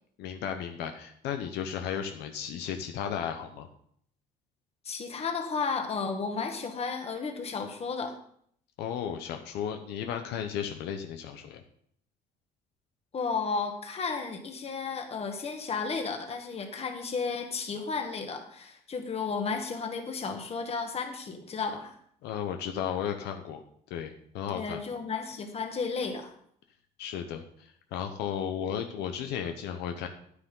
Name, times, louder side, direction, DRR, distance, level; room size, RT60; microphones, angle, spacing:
voice 1, 0.2-3.7 8.8-11.6 22.2-23.6 23.9-24.8 27.0-30.1, left 8 dB, 85° left, 6 dB, 0.9 m, -34 dB
voice 2, 4.9-8.2 13.1-22.0 24.5-26.3, left 5 dB, 35° left, 5 dB, 1.7 m, -33 dB
9.7 x 9.5 x 3.8 m, 0.65 s
cardioid pair, 110°, 17 cm